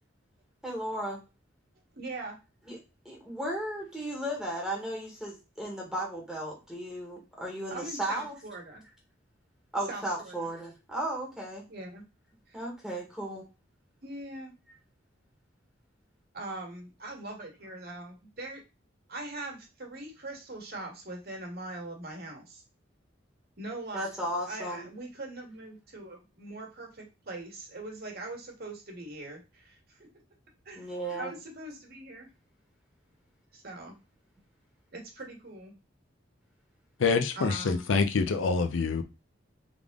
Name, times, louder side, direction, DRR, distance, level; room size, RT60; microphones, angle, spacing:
voice 1, 0.6-1.2 2.7-2.8 3.0-8.3 9.7-11.6 12.5-13.4 23.9-24.9 30.8-31.3, right 1 dB, 5° right, 1.2 m, -35 dB
voice 2, 2.0-2.4 7.7-8.8 9.9-10.5 11.7-12.0 12.5-12.6 14.0-14.5 16.3-18.6 19.1-22.6 23.6-30.1 30.6-32.3 33.5-33.9 34.9-35.7 37.3-37.8, right 2 dB, 55° right, 1.5 m, -41 dB
voice 3, 37.0-39.0, left 4 dB, 80° left, 0.5 m, -26 dB
3.6 x 3.5 x 3.5 m
head